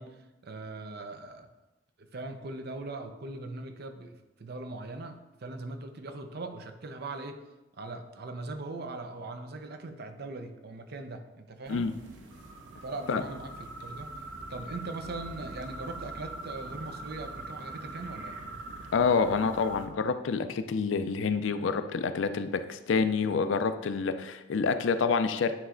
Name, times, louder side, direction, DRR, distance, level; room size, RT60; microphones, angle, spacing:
voice 1, 0.0-1.5 2.0-7.4 7.8-11.9 12.8-14.2 14.5-18.4, right 2 dB, 60° right, 7 dB, 0.6 m, -40 dB
sound 1, 11.7-19.9, right 2 dB, 90° right, 0.8 m, -43 dB
voice 2, 18.9-25.5, left 5 dB, 80° left, 10 dB, 0.4 m, -27 dB
9.4 x 3.2 x 3.7 m, 1.0 s
head